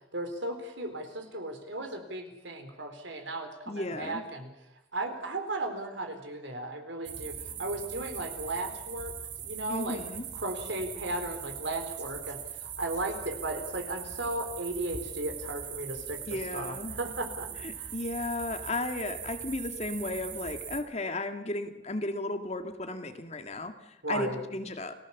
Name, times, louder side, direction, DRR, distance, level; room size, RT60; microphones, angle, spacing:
voice 1, 0.0-4.5 4.9-10.0 10.3-17.9 24.0-24.4, right 2 dB, 80° right, 6 dB, 4.1 m, -36 dB
voice 2, 3.7-4.2 9.7-10.2 16.3-16.9 17.6-24.9, left 2 dB, 35° left, 7 dB, 1.8 m, -34 dB
sound 1, 7.0-20.8, right 8 dB, 65° right, 2.2 m, -41 dB
29.5 x 18.5 x 7.2 m, 0.88 s
head